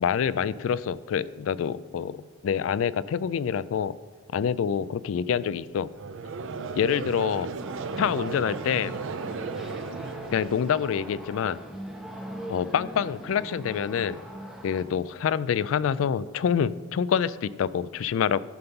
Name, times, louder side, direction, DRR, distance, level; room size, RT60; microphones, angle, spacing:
voice 1, 0.0-4.0 4.3-5.9 6.8-7.5 8.0-8.9 10.3-11.6 12.5-14.2 14.6-18.4, left 7 dB, 80° left, 18 dB, 0.3 m, -26 dB
Conversation / Crowd, 5.9-11.2, right 4 dB, 70° right, 0.4 m, -35 dB
sound 1, 7.6-14.8, right 1 dB, ahead, 0.9 m, -41 dB
11.5 x 5.4 x 5.7 m, 1.5 s
head